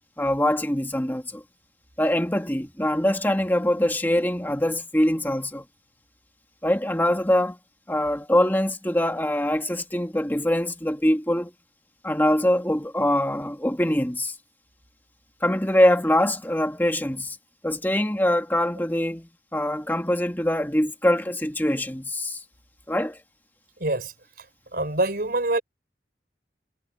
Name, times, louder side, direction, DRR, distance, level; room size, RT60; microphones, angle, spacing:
voice 1, 0.2-1.4 2.0-5.6 6.6-7.6 7.9-11.5 12.0-14.3 15.4-17.4 17.6-22.4 22.9-23.2, left 1 dB, 10° left, 1.7 m, -23 dB
voice 2, 23.8-24.1 24.7-25.6, right 2 dB, 55° right, 4.0 m, -25 dB
head